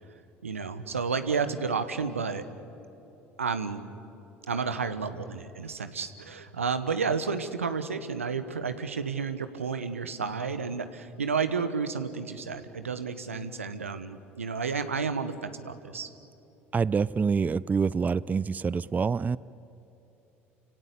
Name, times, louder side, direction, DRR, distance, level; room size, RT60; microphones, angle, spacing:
voice 1, 0.4-2.4 3.4-3.8 4.5-16.1, right 5 dB, 90° right, 11 dB, 1.2 m, -31 dB
voice 2, 16.7-19.4, right 5 dB, 25° right, 20 dB, 0.4 m, -26 dB
29.5 x 17.0 x 8.5 m, 3.0 s
hypercardioid pair, 65°, 7 cm